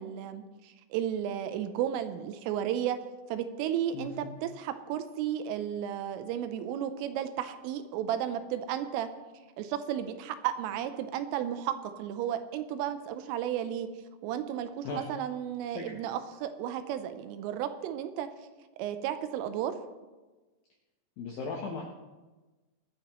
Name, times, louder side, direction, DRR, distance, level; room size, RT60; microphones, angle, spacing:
voice 1, 0.0-3.0 3.3-9.1 9.6-13.9 14.2-18.3 18.8-19.7, right 10 dB, 85° right, 9 dB, 3.3 m, -33 dB
voice 2, 3.9-4.4 14.8-15.0 15.7-16.0 21.2-21.8, left 4 dB, 75° left, -1 dB, 2.1 m, -37 dB
20.5 x 13.0 x 3.1 m, 1.2 s
omnidirectional pair, 5.8 m